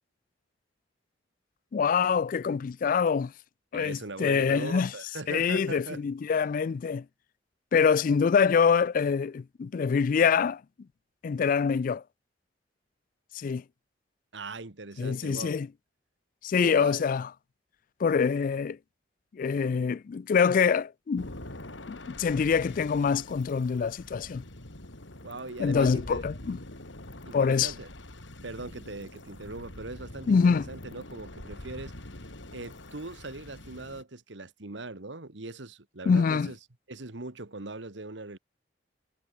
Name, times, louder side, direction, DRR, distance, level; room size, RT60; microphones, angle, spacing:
voice 1, 1.7-3.3 3.7-4.9 5.3-7.0 7.7-10.6 11.2-12.0 13.3-13.6 15.0-15.7 16.4-17.3 18.0-18.8 19.3-21.4 21.9-24.4 25.6-26.6 27.3-27.7 30.3-30.7 36.1-36.5, left 6 dB, 45° left, 0.3 m, -25 dB
voice 2, 3.7-6.0 14.3-15.6 16.6-17.1 25.2-26.2 27.2-27.9 28.4-31.9 32.5-36.6 36.9-38.4, right 2 dB, 75° right, 1.7 m, -40 dB
sound 1, 21.2-34.0, left 1 dB, 90° left, 3.7 m, -45 dB
head